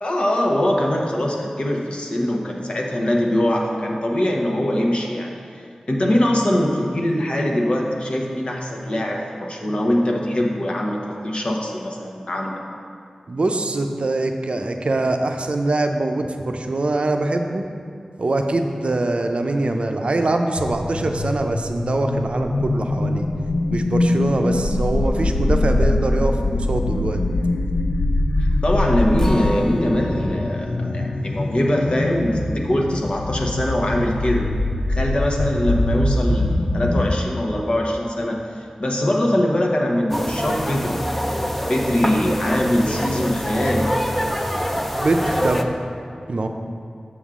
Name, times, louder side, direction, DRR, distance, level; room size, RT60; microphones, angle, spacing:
voice 1, 0.0-5.3 5.9-12.6 28.4-34.5 34.9-41.1 41.7-43.9, left 1 dB, 55° left, 0 dB, 1.0 m, -22 dB
voice 2, 13.3-17.7 18.2-23.3 23.7-27.2 45.0-45.6 46.3-46.5, right 2 dB, 60° right, 5 dB, 0.5 m, -23 dB
sound 1, 20.6-37.2, left 2 dB, 85° left, 0.5 m, -23 dB
Acoustic guitar, 29.2-35.5 35.9-36.0 36.4-36.5, left 1 dB, 30° left, 0.9 m, -33 dB
sound 2, 40.1-45.6, equal, 5° left, 0.5 m, -25 dB
7.2 x 6.3 x 3.7 m, 2.3 s
cardioid pair, 50°, 2 cm